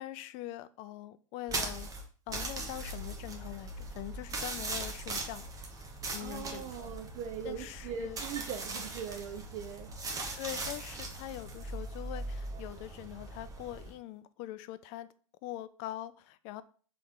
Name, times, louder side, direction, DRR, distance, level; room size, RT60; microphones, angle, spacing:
voice 1, 0.0-1.9 2.3-5.5 5.8-6.9 7.4-8.2 10.3-15.1 15.4-16.6, left 14 dB, 40° left, 0.3 m, -43 dB
sound 1, 1.5-13.9, right 2 dB, 20° right, 0.8 m, -40 dB
voice 2, 6.2-10.4, right 7 dB, 40° right, 0.5 m, -41 dB
3.5 x 3.3 x 3.8 m
figure-of-eight pair, 95°, 17 cm